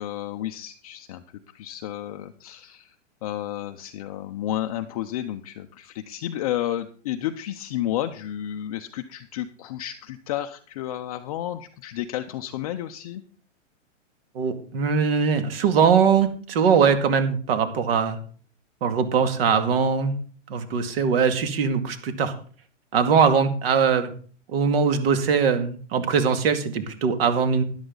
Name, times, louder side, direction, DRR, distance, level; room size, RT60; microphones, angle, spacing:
voice 1, 0.0-3.0 3.2-13.2, left 12 dB, 30° left, 6 dB, 0.6 m, -31 dB
voice 2, 14.3-18.2 18.8-20.1 20.5-22.3 22.9-24.1 24.5-27.6, right 6 dB, 50° right, 9 dB, 2.2 m, -21 dB
13.0 x 11.5 x 3.9 m, 0.43 s
hypercardioid pair, 155°, 38 cm